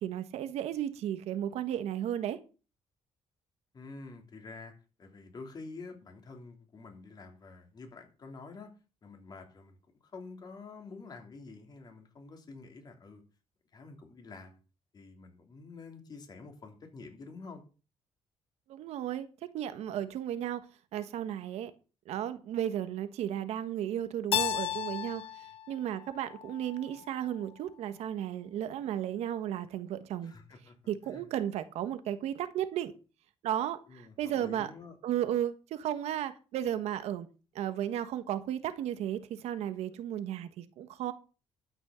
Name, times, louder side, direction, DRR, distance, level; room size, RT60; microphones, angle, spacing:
voice 1, 0.0-2.4 18.7-19.3 19.5-20.6 20.9-21.7 22.1-30.3 30.9-32.9 33.4-34.7 35.0-37.3 37.5-41.1, right 11 dB, 90° right, 1.4 m, -34 dB
voice 2, 3.7-4.7 5.0-8.7 9.0-9.8 10.0-13.2 13.7-14.6 14.9-17.6 30.2-31.2 33.9-35.0, left 3 dB, 40° left, 3.1 m, -48 dB
Keyboard (musical), 24.3-27.1, left 11 dB, 60° left, 0.7 m, -35 dB
12.5 x 6.3 x 7.0 m
cardioid pair, 125°, 11 cm